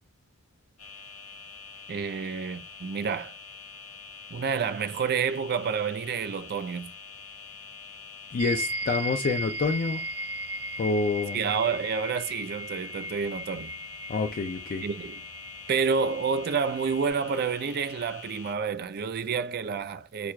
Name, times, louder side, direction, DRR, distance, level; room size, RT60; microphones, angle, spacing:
sound 1, 0.8-18.5, left 5 dB, 65° left, 0.9 m, -45 dB
voice 1, 1.9-3.4 4.3-6.9 11.3-13.7 14.8-15.2 15.7-20.3, right 6 dB, 45° right, 0.4 m, -29 dB
voice 2, 8.3-10.0 10.8-11.4 14.1-14.8, left 4 dB, 40° left, 0.3 m, -27 dB
sound 2, 8.4-17.1, right 1 dB, 65° right, 1.0 m, -37 dB
5.9 x 2.4 x 2.2 m
head